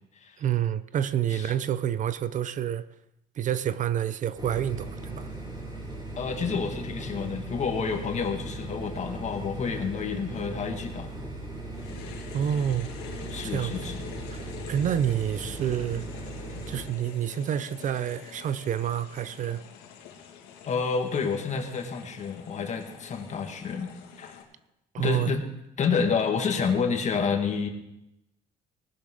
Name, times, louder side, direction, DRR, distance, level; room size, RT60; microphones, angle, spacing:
voice 1, 0.4-2.9 3.4-5.3 12.3-12.9 13.4-13.7 14.3-16.0 16.7-19.6 24.9-25.3, right 10 dB, 50° right, 0.5 m, -28 dB
sound 1, 4.4-16.8, right 2 dB, 25° right, 5.6 m, -38 dB
voice 2, 6.2-11.1 13.3-14.0 20.6-23.9 24.2-24.4 25.0-25.4 25.8-27.7, left 5 dB, 45° left, 2.0 m, -29 dB
sound 2, 11.7-24.4, left 8 dB, 85° left, 2.2 m, -46 dB
19.0 x 11.5 x 3.8 m
cardioid pair, 110°, 17 cm